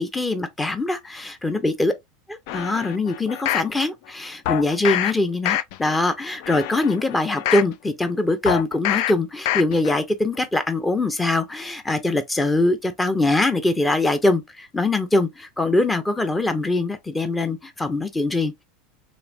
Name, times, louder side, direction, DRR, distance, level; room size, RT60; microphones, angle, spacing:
voice 1, 0.0-1.9 2.5-18.6, left 2 dB, 15° left, 0.7 m, -22 dB
sound 1, 2.5-3.7 4.5-5.1 5.4-6.0 6.4-7.7 8.5-9.1 9.5-10.0 10.4-10.5, left 13 dB, 65° left, 0.3 m, -26 dB
3.1 x 2.5 x 2.4 m
hypercardioid pair, 90°, 0 cm